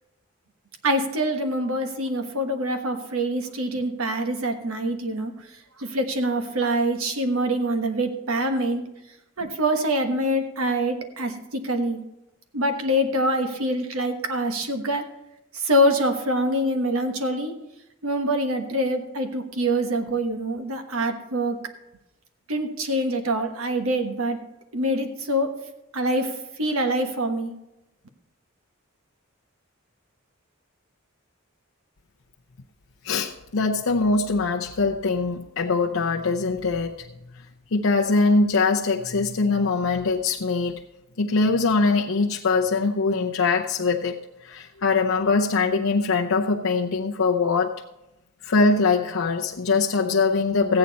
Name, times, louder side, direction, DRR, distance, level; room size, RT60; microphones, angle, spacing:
voice 1, 0.8-5.5 5.8-8.9 9.4-12.0 12.5-15.0 15.5-17.5 18.0-21.6 22.5-24.4 24.7-25.6 25.9-27.5, right 1 dB, 90° right, 6 dB, 1.3 m, -25 dB
voice 2, 33.0-37.0 37.7-40.8 41.2-44.2 44.4-47.7 48.4-50.8, left 4 dB, 80° left, 0 dB, 0.6 m, -22 dB
14.5 x 9.0 x 4.1 m, 0.91 s
head